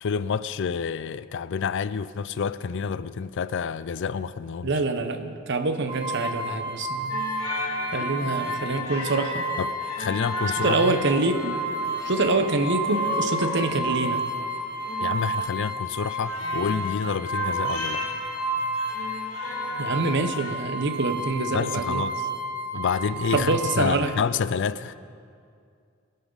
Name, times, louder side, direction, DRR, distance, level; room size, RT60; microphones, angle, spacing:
voice 1, 0.0-4.7 9.6-11.0 15.0-18.0 21.5-22.3 22.7-24.9, left 6 dB, 65° left, 0.4 m, -28 dB
voice 2, 4.6-7.2 7.9-9.5 10.6-11.6 12.0-14.2 19.8-22.0 23.3-24.1, right 3 dB, 60° right, 1.0 m, -25 dB
sound 1, 5.9-23.9, right 1 dB, 25° right, 1.2 m, -31 dB
sound 2, 7.1-20.5, left 2 dB, 85° left, 1.9 m, -35 dB
21.5 x 11.0 x 4.0 m
head